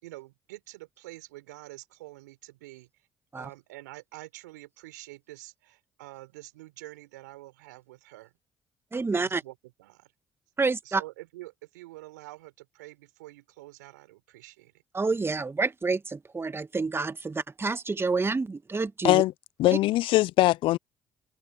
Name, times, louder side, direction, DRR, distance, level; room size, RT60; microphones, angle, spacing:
voice 1, 0.0-2.9 3.3-8.3 9.1-10.1 10.8-14.7, right 19 dB, 85° right, 4.6 m, -47 dB
voice 2, 8.9-9.4 10.6-11.0 14.9-19.2, right 4 dB, 25° right, 1.6 m, -28 dB
voice 3, 19.6-20.8, left 16 dB, 65° left, 0.5 m, -21 dB
hypercardioid pair, 50°, 9 cm